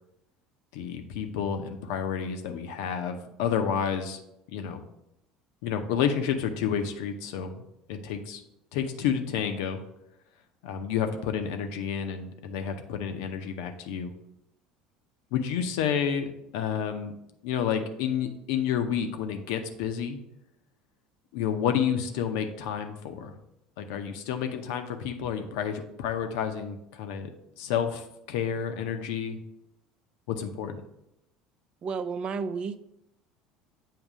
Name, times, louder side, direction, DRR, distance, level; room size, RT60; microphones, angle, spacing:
voice 1, 0.7-4.2 4.5-4.8 5.6-7.6 7.9-8.4 8.7-9.8 10.6-14.1 15.3-17.1 17.4-20.2 21.3-23.3 23.8-27.3 27.6-29.4 30.3-30.8, left 8 dB, 75° left, 7 dB, 0.6 m, -30 dB
voice 2, 31.8-32.8, right 5 dB, 40° right, 12 dB, 0.4 m, -31 dB
7.4 x 2.6 x 4.9 m, 0.83 s
hypercardioid pair, 80°, 2 cm